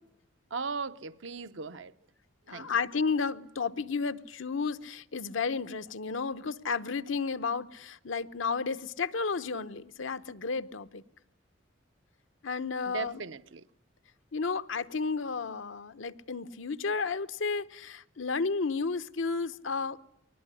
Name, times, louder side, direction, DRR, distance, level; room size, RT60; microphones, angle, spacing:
voice 1, 0.5-1.9 2.5-2.7 12.9-13.6, right 5 dB, 75° right, 0.9 m, -37 dB
voice 2, 2.5-11.0 12.4-13.2 14.3-20.1, left 4 dB, 85° left, 0.9 m, -32 dB
22.0 x 20.0 x 9.9 m
head